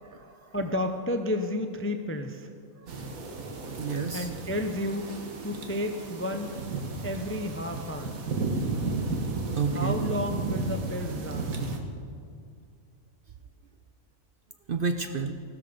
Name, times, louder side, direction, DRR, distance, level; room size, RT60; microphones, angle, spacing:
voice 1, 0.0-0.5 3.0-3.1 3.8-4.3 9.6-10.0 14.7-15.3, right 5 dB, 50° right, 6 dB, 0.7 m, -30 dB
voice 2, 0.5-2.5 4.1-5.1 5.4-6.5 7.0-8.2 9.7-11.8, left 1 dB, 15° left, 6 dB, 0.5 m, -31 dB
sound 1, 2.9-11.8, right 3 dB, 75° right, 1.8 m, -33 dB
16.0 x 13.0 x 5.2 m, 2.3 s
omnidirectional pair, 1.5 m